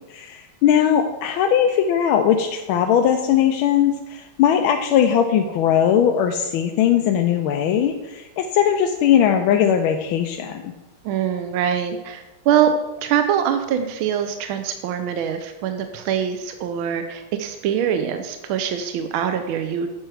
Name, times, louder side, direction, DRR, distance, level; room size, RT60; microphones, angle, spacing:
voice 1, 0.1-10.7, left 9 dB, 85° left, 4 dB, 1.4 m, -19 dB
voice 2, 11.0-12.7 13.0-19.9, right 9 dB, 80° right, 7 dB, 1.4 m, -23 dB
9.1 x 6.2 x 4.8 m, 1.1 s
omnidirectional pair, 2.2 m